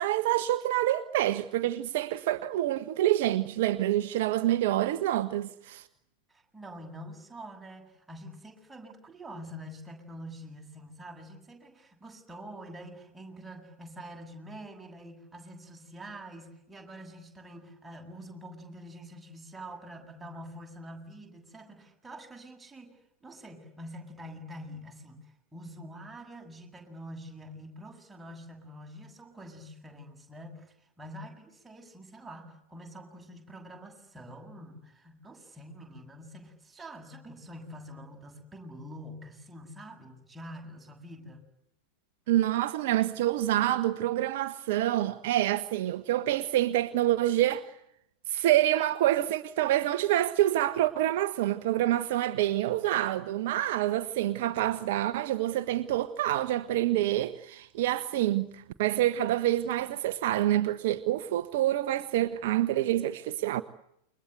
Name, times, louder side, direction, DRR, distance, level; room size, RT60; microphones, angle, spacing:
voice 1, 0.0-5.9 42.3-47.6 48.3-63.6, right 14 dB, 50° right, 1.3 m, -27 dB
voice 2, 6.3-41.4, equal, 10° right, 8.0 m, -46 dB
29.5 x 25.0 x 8.1 m
figure-of-eight pair, 90°, 0 cm